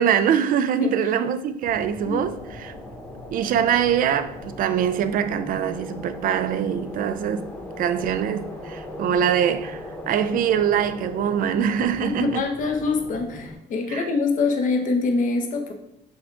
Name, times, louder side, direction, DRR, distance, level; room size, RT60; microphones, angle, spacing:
voice 1, 0.0-2.7 3.3-7.5 7.8-9.8 10.1-12.4 13.9-14.1, right 8 dB, 55° right, 0.4 m, -23 dB
voice 2, 0.8-1.1 2.0-2.2 12.2-15.7, left 4 dB, 50° left, 0.8 m, -24 dB
sound 1, 1.6-13.6, left 1 dB, 10° left, 1.0 m, -38 dB
6.2 x 2.3 x 3.7 m
cardioid pair, 110°, 17 cm